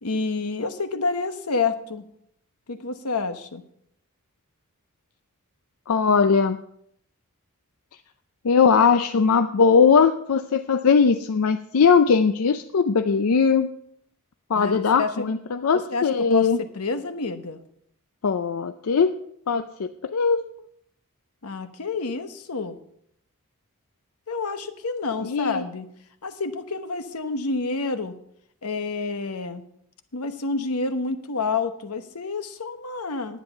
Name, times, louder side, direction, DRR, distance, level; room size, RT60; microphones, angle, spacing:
voice 1, 0.0-2.0 2.7-3.6 14.5-15.2 15.7-16.5 16.7-17.6 21.4-22.8 24.3-25.9 26.2-28.1 28.6-29.6 30.1-33.4, left 4 dB, 85° left, 9 dB, 1.1 m, -29 dB
voice 2, 5.9-6.6 8.4-13.7 14.5-16.6 18.2-19.1 19.5-20.4 25.2-25.6, left 5 dB, 70° left, 9 dB, 0.5 m, -20 dB
10.5 x 9.2 x 5.6 m, 0.71 s
head